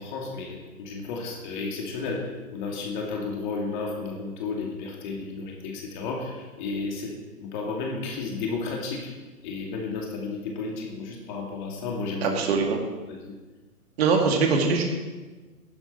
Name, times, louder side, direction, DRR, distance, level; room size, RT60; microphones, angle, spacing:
voice 1, 0.0-7.1 7.4-9.1 9.4-12.4 13.1-13.3, left 4 dB, 30° left, 0 dB, 2.5 m, -32 dB
voice 2, 12.2-12.8 14.0-14.8, right 4 dB, 40° right, 2 dB, 2.3 m, -22 dB
16.5 x 11.5 x 4.5 m, 1.3 s
figure-of-eight pair, 125°, 46 cm